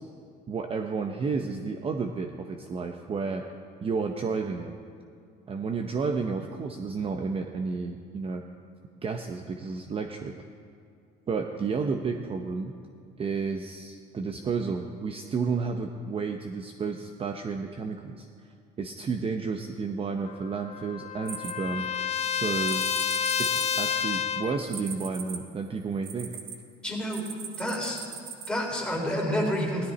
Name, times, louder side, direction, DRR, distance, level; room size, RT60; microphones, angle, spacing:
voice 1, 0.5-3.4 3.8-4.7 5.5-8.4 9.0-10.3 11.3-12.7 13.2-18.3 18.8-21.9 22.3-22.8 23.4-26.3, right 5 dB, 30° right, 5 dB, 0.7 m, -31 dB
Trumpet, 20.3-24.6, left 8 dB, 35° left, 0.6 m, -29 dB
sound 1, 21.3-22.1 22.7-26.6 27.1-28.5, right 7 dB, 55° right, 1.2 m, -39 dB
voice 2, 26.8-27.2 27.6-28.0 28.5-29.9, equal, 5° left, -2 dB, 3.3 m, -29 dB
17.0 x 13.0 x 4.2 m, 2.4 s
cardioid pair, 110°, 18 cm